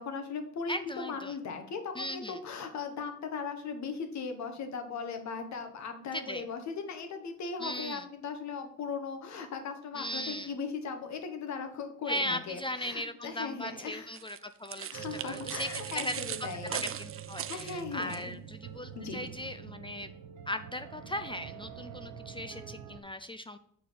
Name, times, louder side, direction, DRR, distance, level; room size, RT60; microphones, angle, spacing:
voice 1, 0.0-14.2 14.9-16.8 17.5-18.3 18.9-19.2, left 5 dB, 65° left, 6 dB, 1.5 m, -38 dB
voice 2, 0.7-1.3 2.0-2.4 6.1-6.4 7.6-8.1 9.9-10.5 12.1-16.2 17.0-20.1 20.5-23.6, left 1 dB, 15° left, 10 dB, 0.4 m, -38 dB
sound 1, 14.1-18.2, right 10 dB, 45° right, 0.5 m, -39 dB
sound 2, 14.9-23.0, right 9 dB, 75° right, 0.9 m, -45 dB
6.5 x 4.6 x 5.3 m, 0.66 s
cardioid pair, 90°, 30 cm